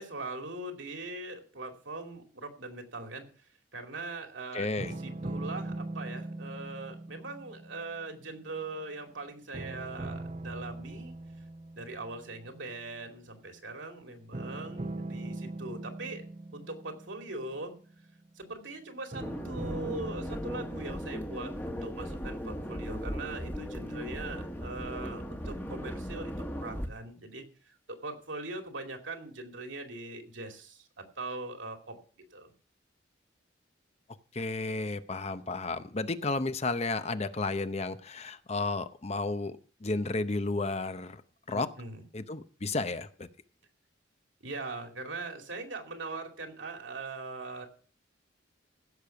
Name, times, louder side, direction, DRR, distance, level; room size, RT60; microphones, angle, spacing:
voice 1, 0.0-11.2 11.7-16.2 16.5-17.7 18.4-32.0 32.3-32.5 41.5-42.0 44.4-47.7, right 2 dB, 80° right, 2.6 m, -41 dB
voice 2, 4.5-4.9 34.3-39.5 39.8-41.2 41.5-41.7 42.1-43.3, left 3 dB, 35° left, 0.7 m, -32 dB
sound 1, 4.8-9.1 9.5-12.8 14.3-18.3 19.1-21.3, right 2 dB, 35° right, 0.8 m, -41 dB
sound 2, 19.2-26.9, equal, 10° left, 1.3 m, -37 dB
15.5 x 6.7 x 5.7 m
head